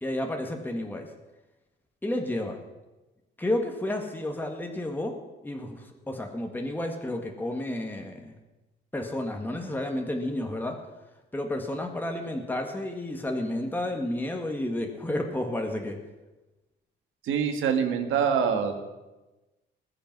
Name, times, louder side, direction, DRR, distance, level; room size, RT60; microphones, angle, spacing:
voice 1, 0.0-1.1 2.0-2.6 3.4-8.4 8.9-10.8 11.3-16.0, left 1 dB, 10° left, 2 dB, 1.7 m, -31 dB
voice 2, 17.2-18.8, right 7 dB, 85° right, 5 dB, 1.9 m, -25 dB
20.0 x 6.9 x 6.0 m, 1.1 s
cardioid pair, 90°, 20 cm